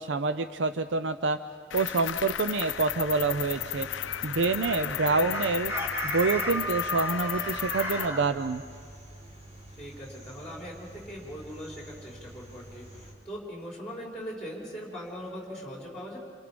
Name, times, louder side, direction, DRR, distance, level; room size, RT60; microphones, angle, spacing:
voice 1, 0.0-1.4 1.7-3.9 4.2-5.7 6.0-8.6, right 3 dB, 80° right, 10 dB, 0.6 m, -27 dB
Cricket, 1.7-8.1, left 11 dB, 90° left, 0.5 m, -34 dB
sound 1, 2.7-13.1, right 1 dB, 35° right, 5.1 m, -48 dB
voice 2, 4.8-5.3 9.8-16.2, equal, 5° left, -3 dB, 5.5 m, -41 dB
Chicken rooster, 5.3-8.2, equal, 15° right, 3.1 m, -33 dB
29.0 x 27.5 x 5.2 m, 2.2 s
head